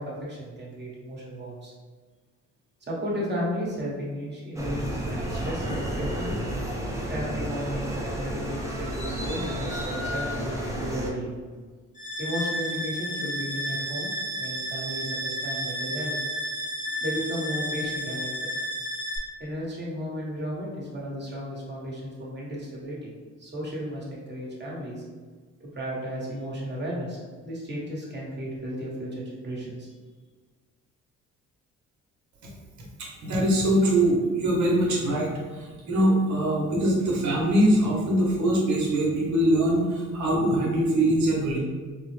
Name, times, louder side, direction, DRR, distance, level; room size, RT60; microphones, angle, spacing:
voice 1, 0.0-1.7 2.8-6.4 7.1-11.3 12.2-14.1 14.4-16.2 17.0-18.3 19.4-23.1 23.4-25.0 25.6-29.9, equal, 35° right, -4 dB, 1.2 m, -34 dB
sound 1, 4.6-11.1, equal, 10° right, 0.6 m, -31 dB
sound 2, 12.0-19.2, equal, 25° left, 1.0 m, -32 dB
voice 2, 33.2-41.6, right 1 dB, 70° right, -3 dB, 1.0 m, -23 dB
3.8 x 2.1 x 3.2 m, 1.5 s
cardioid pair, 90°, 30 cm